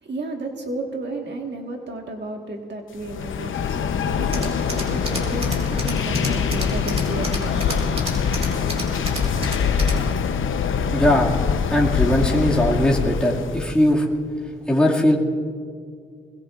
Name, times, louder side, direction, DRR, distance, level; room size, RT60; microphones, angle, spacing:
voice 1, 0.0-8.2, right 2 dB, 55° right, 2 dB, 1.6 m, -33 dB
sound 1, 3.0-13.8, left 7 dB, 75° left, 0.8 m, -24 dB
Tools, 4.3-10.1, right 1 dB, 30° right, 3.9 m, -33 dB
voice 2, 10.9-11.4 11.7-14.1 14.7-15.2, equal, 5° left, -3 dB, 2.1 m, -19 dB
22.5 x 21.0 x 2.5 m, 2.1 s
cardioid pair, 75°, 21 cm